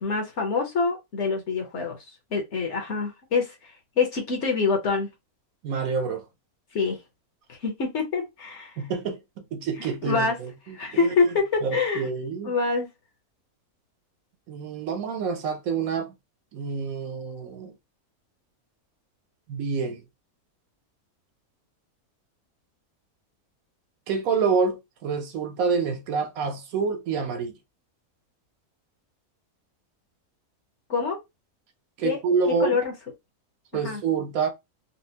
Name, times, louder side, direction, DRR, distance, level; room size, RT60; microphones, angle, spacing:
voice 1, 0.0-2.0 2.3-5.1 6.7-7.0 7.5-8.8 9.8-10.4 10.7-12.0 12.4-12.9 30.9-31.2 32.0-32.2 32.6-32.9 33.7-34.0, left 4 dB, 55° left, 1.1 m, -26 dB
voice 2, 5.6-6.3 8.8-9.2 9.5-10.7 11.0-11.1 11.6-12.5 14.5-16.1 16.5-17.7 19.5-20.0 24.1-27.5 32.0-32.8 33.7-34.5, right 5 dB, 70° right, 1.1 m, -27 dB
4.2 x 2.1 x 2.7 m
omnidirectional pair, 1.6 m